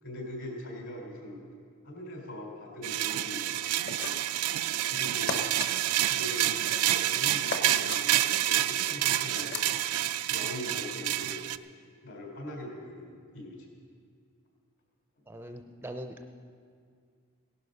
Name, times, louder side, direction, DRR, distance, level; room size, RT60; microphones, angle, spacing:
voice 1, 0.0-1.4 1.8-3.9 4.8-5.4 6.1-9.7 10.3-11.4 12.0-13.6, left 1 dB, 70° left, -1 dB, 4.0 m, -41 dB
sound 1, 2.8-11.6, right 13 dB, 90° right, 0.4 m, -28 dB
sound 2, 3.8-4.4 5.3-5.7 7.5-8.0 9.3-9.7, left 4 dB, 50° left, 1.1 m, -35 dB
voice 2, 15.3-16.2, equal, 10° right, 6 dB, 0.5 m, -41 dB
17.5 x 11.5 x 5.4 m, 2.2 s
head